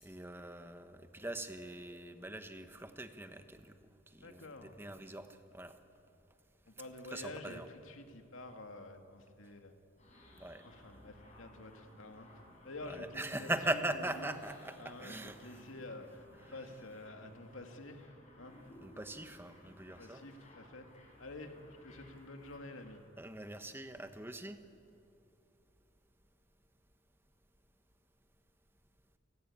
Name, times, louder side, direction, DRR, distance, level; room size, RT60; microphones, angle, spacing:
voice 1, 0.0-3.7 4.1-5.8 7.1-7.7 10.4-10.6 12.9-15.4 18.8-20.2 23.2-24.6, right 1 dB, 10° right, 8 dB, 1.2 m, -41 dB
voice 2, 4.2-4.8 6.7-9.8 10.6-12.3 12.6-14.4 14.8-18.1 18.4-18.6 19.9-20.9 21.2-21.6 21.8-23.0, left 2 dB, 85° left, 5 dB, 2.3 m, -49 dB
sound 1, 10.0-22.9, left 1 dB, 35° left, 7.3 m, -60 dB
30.0 x 18.0 x 8.8 m, 2.7 s
head